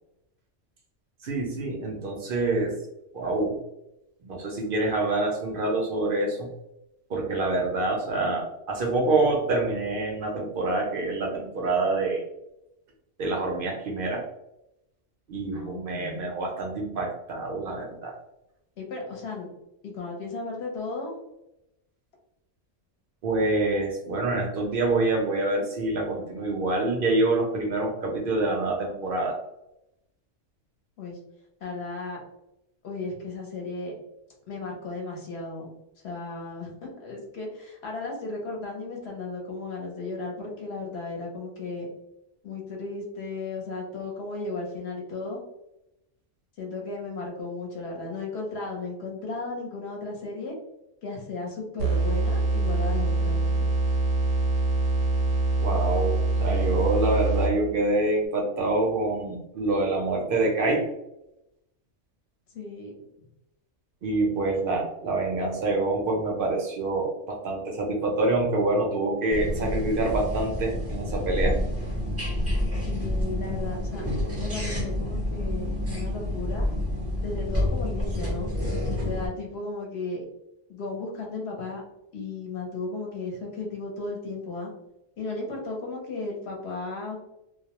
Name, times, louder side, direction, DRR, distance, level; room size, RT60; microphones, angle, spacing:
voice 1, 1.2-2.7 3.1-3.6 4.2-6.5 7.1-12.2 13.2-14.2 15.3-18.1 23.2-29.4 55.6-60.9 64.0-71.6, right 2 dB, 60° right, 0 dB, 0.6 m, -26 dB
voice 2, 15.5-16.3 18.8-19.5 19.8-21.2 31.0-31.2 31.6-32.2 32.8-33.9 34.5-35.7 36.0-41.9 42.4-45.4 46.6-50.6 51.0-53.7 62.5-62.9 72.9-74.0 74.4-76.7 77.2-78.5 79.0-80.2 80.7-81.8 82.1-84.7 85.2-87.2, left 3 dB, 60° left, 0 dB, 0.9 m, -35 dB
sound 1, 51.8-57.8, right 3 dB, 85° right, 0.9 m, -24 dB
sound 2, 69.3-79.3, left 1 dB, 15° right, 0.6 m, -28 dB
2.2 x 2.0 x 2.8 m, 0.86 s
omnidirectional pair, 1.3 m